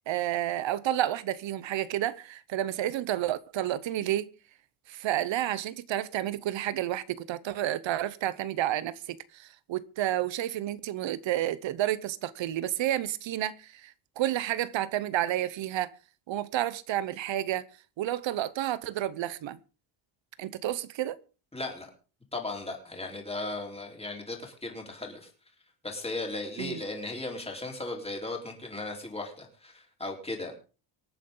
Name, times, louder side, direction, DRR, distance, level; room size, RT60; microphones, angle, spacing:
voice 1, 0.1-4.3 4.9-15.9 16.3-17.6 18.0-19.6 20.4-21.2 26.6-26.8, right 13 dB, 65° right, 0.9 m, -30 dB
voice 2, 21.5-21.9 22.3-25.3 25.8-30.7, left 2 dB, 10° left, 4.1 m, -36 dB
25.0 x 9.2 x 3.8 m
cardioid pair, 150°, 49 cm